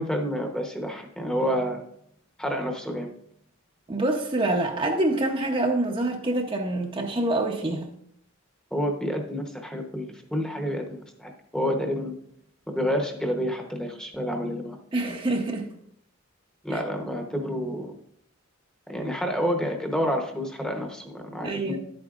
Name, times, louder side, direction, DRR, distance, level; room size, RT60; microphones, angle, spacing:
voice 1, 0.0-1.8 2.4-3.1 8.7-12.2 12.7-14.8 16.6-17.9 18.9-21.8, equal, 5° left, 3 dB, 0.9 m, -29 dB
voice 2, 3.9-7.9 14.9-15.7 16.7-16.8 21.4-21.8, right 2 dB, 25° right, 2 dB, 0.7 m, -26 dB
11.0 x 8.6 x 2.4 m, 0.69 s
head